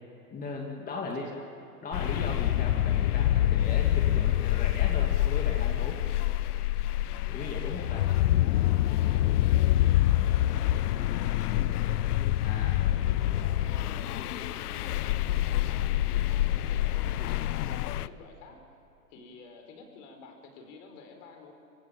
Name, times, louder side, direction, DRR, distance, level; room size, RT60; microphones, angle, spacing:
voice 1, 0.3-1.3 1.8-6.0 7.3-8.1 8.7-8.9 12.4-12.8, left 3 dB, 20° left, 0 dB, 2.3 m, -38 dB
voice 2, 0.8-1.5 1.8-2.1 7.7-12.1 12.8-18.6 19.1-21.5, left 4 dB, 50° left, 4 dB, 4.8 m, -50 dB
sound 1, 1.9-18.1, left 13 dB, 70° left, 0.8 m, -26 dB
25.0 x 16.5 x 9.1 m, 2.7 s
hypercardioid pair, 120°, 48 cm